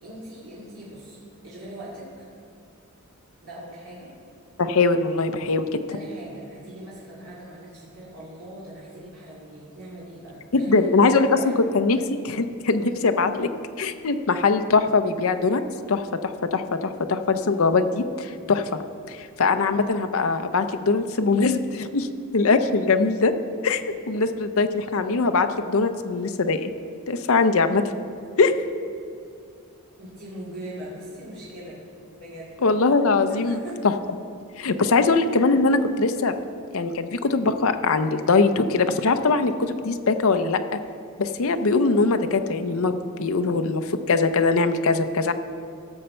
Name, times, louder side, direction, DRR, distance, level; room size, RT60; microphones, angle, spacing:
voice 1, 0.0-2.2 3.4-4.1 5.9-11.6 30.0-31.8 32.1-32.5 33.3-33.8, right 1 dB, 85° right, -8 dB, 2.5 m, -40 dB
voice 2, 4.6-5.8 10.5-11.3 11.7-12.0 12.2-13.5 13.8-15.6 15.9-18.7 19.1-22.1 22.3-23.3 23.6-23.8 24.1-26.7 27.1-27.8 28.4-28.5 32.6-33.6 33.8-33.9 34.6-36.4 36.7-40.8 41.2-42.9 43.2-45.3, left 3 dB, 70° left, 8 dB, 0.6 m, -21 dB
16.5 x 6.9 x 4.4 m, 2.3 s
head